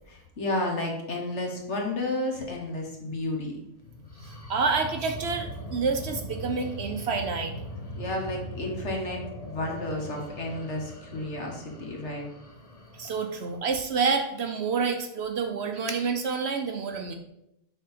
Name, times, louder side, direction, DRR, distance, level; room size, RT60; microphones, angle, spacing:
voice 1, 0.1-3.6 8.0-12.3, left 1 dB, 55° left, 1 dB, 1.5 m, -32 dB
sound 1, 3.8-13.6, left 1 dB, 30° left, 1.0 m, -40 dB
voice 2, 4.5-7.5 13.0-17.2, right 5 dB, 60° right, 5 dB, 0.8 m, -28 dB
6.7 x 3.7 x 5.7 m, 0.83 s
omnidirectional pair, 1.5 m